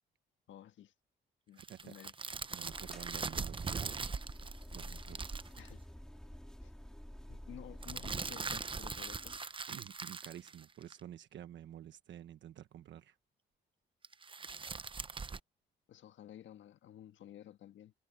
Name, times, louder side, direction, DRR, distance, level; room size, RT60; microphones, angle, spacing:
voice 1, 0.5-0.9 1.5-2.1 5.6-5.8 6.6-6.7 7.3-9.3 15.9-17.9, left 11 dB, 75° left, 1.6 m, -53 dB
sound 1, 1.6-5.7 7.8-11.0 14.0-15.4, right 5 dB, 25° right, 0.8 m, -41 dB
voice 2, 1.6-1.9 2.5-4.1 4.7-5.4 9.7-13.2, right 11 dB, 65° right, 1.2 m, -50 dB
sound 2, 2.7-9.4, equal, 5° left, 2.4 m, -50 dB
cardioid pair, 90°, 20 cm